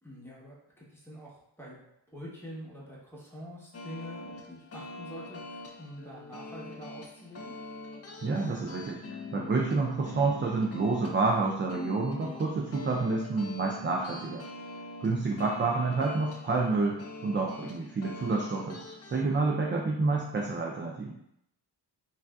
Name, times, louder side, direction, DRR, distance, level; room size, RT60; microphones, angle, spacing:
voice 1, 0.0-1.8 2.1-7.5 15.2-15.7, equal, 5° left, -5 dB, 1.0 m, -46 dB
sound 1, 3.7-19.2, left 3 dB, 35° left, 0.4 m, -44 dB
voice 2, 8.2-14.4 15.0-17.0 17.2-18.8 19.1-21.2, right 3 dB, 25° right, -1 dB, 0.4 m, -29 dB
3.2 x 2.7 x 2.3 m, 0.77 s
cardioid pair, 80°, 46 cm